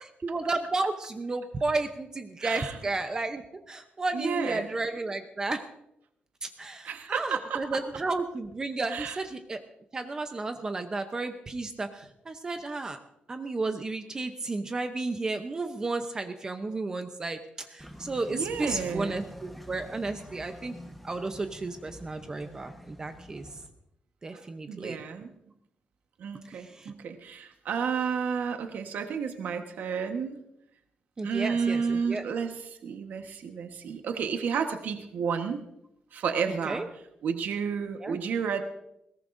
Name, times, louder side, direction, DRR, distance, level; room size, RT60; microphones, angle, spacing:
voice 1, 0.2-5.6 6.4-9.6 9.9-13.0 13.3-20.8 21.0-23.5 24.2-25.0 26.5-26.9 31.2-32.3 36.5-36.9 38.0-38.2, right 3 dB, 20° right, 7 dB, 0.7 m, -33 dB
voice 2, 2.4-2.7 4.1-4.7 6.8-7.6 8.9-9.2 18.3-19.2 24.3-24.4 24.7-25.3 26.2-30.4 31.2-35.6 36.1-36.8 37.2-38.6, right 6 dB, 70° right, 5 dB, 1.3 m, -31 dB
sound 1, 17.8-23.7, equal, ahead, 1.2 m, -47 dB
20.5 x 17.5 x 2.6 m, 0.80 s
wide cardioid pair, 175°, 3 cm